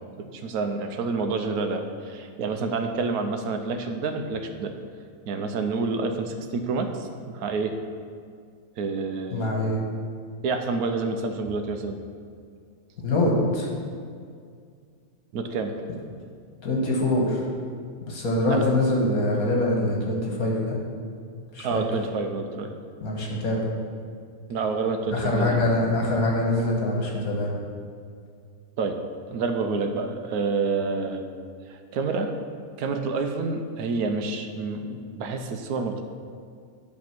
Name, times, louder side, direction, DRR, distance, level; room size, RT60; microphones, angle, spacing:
voice 1, 0.2-4.7 5.3-7.7 8.8-9.5 10.4-12.0 15.3-15.7 18.4-18.6 19.1-19.2 21.6-22.7 24.5-25.7 28.8-29.0 29.3-31.2 31.7-32.3 32.8-36.0, right 4 dB, 75° right, 6 dB, 1.1 m, -28 dB
voice 2, 9.3-9.8 13.0-13.7 16.6-17.4 18.1-20.8 21.5-21.8 23.0-23.7 25.1-27.5, left 1 dB, 70° left, -2 dB, 1.9 m, -24 dB
10.5 x 3.5 x 5.9 m, 2.2 s
omnidirectional pair, 1.6 m